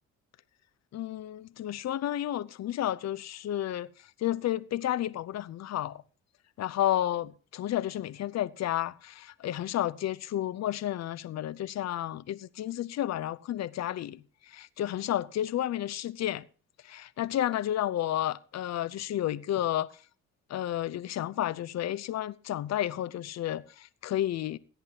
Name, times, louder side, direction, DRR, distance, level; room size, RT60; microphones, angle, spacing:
voice 1, 0.9-3.9 4.2-6.0 6.6-16.4 16.8-19.9 20.5-24.6, left 12 dB, 60° left, 0.6 m, -31 dB
16.5 x 10.5 x 2.8 m
cardioid pair, 90°, 30 cm